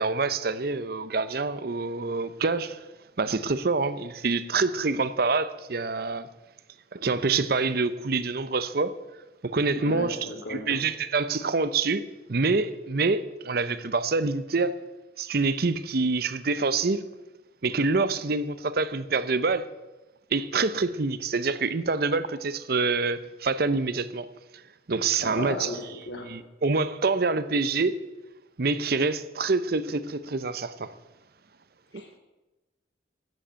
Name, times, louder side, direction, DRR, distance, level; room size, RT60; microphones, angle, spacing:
voice 1, 0.0-2.8 3.2-6.3 6.9-8.9 9.4-12.0 12.3-14.7 15.2-17.0 17.6-19.7 20.3-24.3 24.9-25.7 26.2-27.9 28.6-30.9, right 3 dB, 55° right, 0.7 m, -26 dB
voice 2, 9.8-10.8 25.2-25.8 26.1-26.3 31.9-32.2, left 1 dB, 85° left, 3.1 m, -35 dB
13.5 x 7.8 x 8.8 m
head